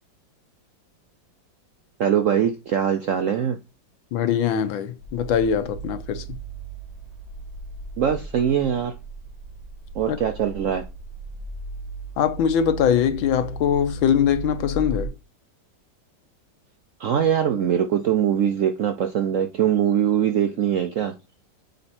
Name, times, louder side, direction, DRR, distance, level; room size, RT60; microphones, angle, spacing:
voice 1, 2.0-3.6 8.0-8.9 9.9-10.8 17.0-21.1, right 9 dB, 70° right, 0.7 m, -22 dB
voice 2, 4.1-6.4 10.1-10.2 12.2-15.1, left 8 dB, 85° left, 1.6 m, -22 dB
sound 1, 5.0-15.1, right 2 dB, 20° right, 1.8 m, -36 dB
6.8 x 4.4 x 4.2 m
omnidirectional pair, 2.1 m